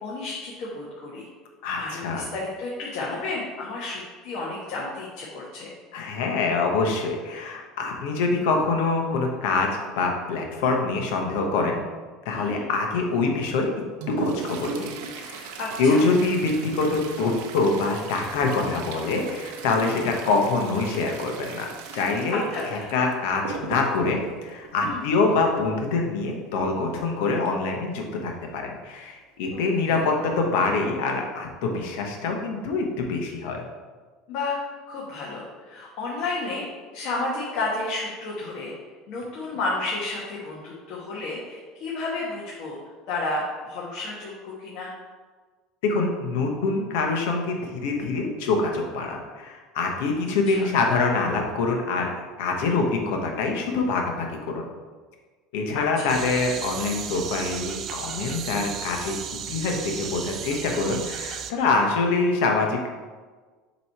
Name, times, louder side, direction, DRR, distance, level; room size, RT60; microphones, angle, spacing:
voice 1, 0.0-1.3 1.7-5.7 12.3-12.6 15.6-16.1 19.8-20.0 22.3-22.9 24.8-25.0 29.5-30.1 34.3-34.5 34.9-36.7 36.9-38.7 39.1-42.8 43.1-44.9 50.5-50.7 55.7-56.2 61.5-61.7, left 2 dB, 55° left, -5 dB, 1.2 m, -32 dB
voice 2, 1.6-2.2 5.9-9.7 10.0-11.8 12.2-13.7 14.2-15.5 15.8-33.6 45.8-54.6 55.5-62.9, left 3 dB, 80° left, 2 dB, 1.1 m, -25 dB
Toilet flush, 13.6-25.6 27.5-27.6 27.9-28.0 28.8-28.9 29.5-29.8 30.2-30.4, right 4 dB, 75° right, 0.7 m, -37 dB
sound 1, 56.1-61.5, right 7 dB, 40° right, 0.4 m, -35 dB
6.8 x 3.1 x 4.6 m, 1.4 s
supercardioid pair, 140°, 0 cm